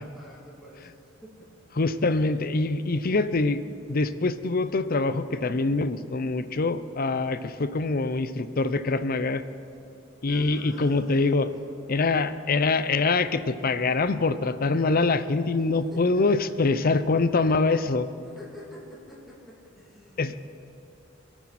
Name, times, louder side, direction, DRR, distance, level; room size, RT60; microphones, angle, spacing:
voice 1, 0.0-1.5 10.3-12.1 15.5-16.7 18.2-20.4, equal, ahead, -6 dB, 2.8 m, -49 dB
voice 2, 1.8-3.6 3.9-9.4 10.2-11.5 11.9-18.1 20.2-20.4, left 3 dB, 45° left, 13 dB, 0.6 m, -24 dB
27.0 x 9.2 x 4.2 m, 2.7 s
head